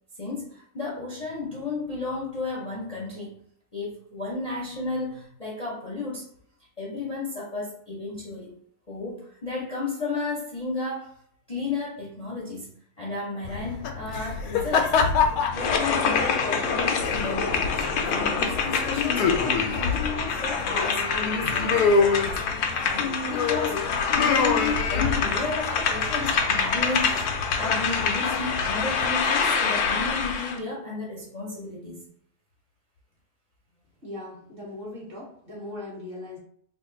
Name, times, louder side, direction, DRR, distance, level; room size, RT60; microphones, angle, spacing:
voice 1, 0.2-3.3 3.7-6.3 6.8-8.5 8.9-11.1 11.5-12.7 13.0-22.4 22.8-27.3 27.6-32.1, left 3 dB, 35° left, -5 dB, 0.7 m, -33 dB
sound 1, 13.4-29.1, left 5 dB, 85° left, 1.2 m, -28 dB
sound 2, 15.5-30.6, left 5 dB, 70° left, 0.7 m, -26 dB
voice 2, 34.0-36.4, left 2 dB, 40° right, -5 dB, 1.2 m, -39 dB
2.9 x 2.5 x 3.8 m, 0.64 s
omnidirectional pair, 1.6 m